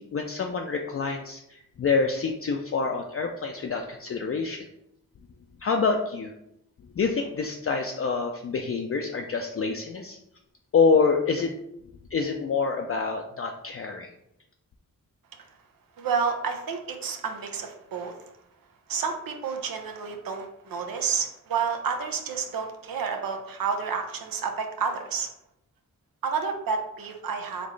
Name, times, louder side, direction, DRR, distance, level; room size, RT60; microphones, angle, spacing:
voice 1, 0.0-4.6 5.6-6.3 7.0-10.2 10.7-11.5 12.1-14.1, left 5 dB, 40° left, 2 dB, 0.4 m, -26 dB
voice 2, 16.0-18.2 18.9-25.3 26.2-27.7, right 6 dB, 85° right, 4 dB, 0.6 m, -30 dB
4.1 x 3.1 x 3.2 m, 0.80 s
cardioid pair, 55°, 33 cm